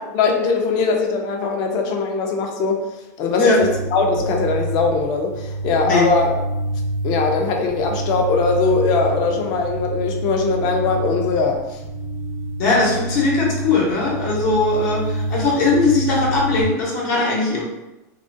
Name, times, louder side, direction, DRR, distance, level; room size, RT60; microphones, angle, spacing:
voice 1, 0.1-2.9 3.2-6.3 7.0-11.8, left 4 dB, 45° left, 2 dB, 0.5 m, -21 dB
sound 1, 3.6-16.6, right 1 dB, 85° right, 0.6 m, -27 dB
voice 2, 12.6-17.6, left 3 dB, 65° left, -3 dB, 0.9 m, -19 dB
2.3 x 2.1 x 2.6 m, 1.0 s
supercardioid pair, 135°, 10 cm